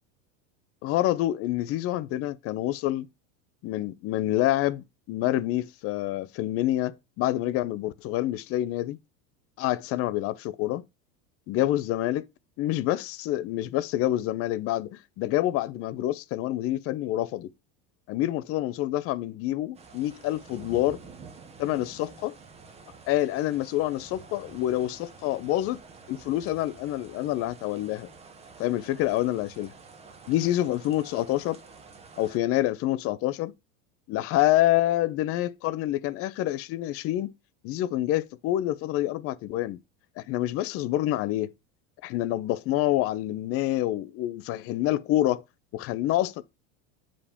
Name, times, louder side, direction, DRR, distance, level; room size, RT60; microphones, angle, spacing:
voice 1, 0.8-3.1 3.6-9.0 9.6-10.8 11.5-12.3 12.6-17.5 18.1-21.0 21.6-22.3 23.1-25.8 26.1-28.1 28.6-29.7 30.3-31.6 32.2-33.5 34.1-37.3 37.6-39.8 40.2-41.5 42.0-45.4 45.7-46.4, left 14 dB, 40° left, 0.6 m, -27 dB
sound 1, 19.7-32.4, right 5 dB, 15° right, 0.8 m, -49 dB
8.4 x 5.1 x 3.5 m
supercardioid pair, 145°, 38 cm